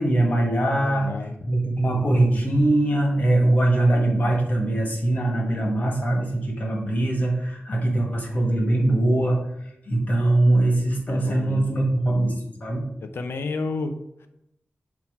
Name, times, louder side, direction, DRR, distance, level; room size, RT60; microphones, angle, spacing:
voice 1, 0.0-1.1 1.5-12.9, right 1 dB, 45° left, 0 dB, 1.7 m, -22 dB
voice 2, 0.8-1.3 11.1-11.9 13.1-14.3, left 3 dB, 75° left, 7 dB, 0.6 m, -31 dB
6.2 x 4.2 x 4.6 m, 0.80 s
wide cardioid pair, 135°, 4 cm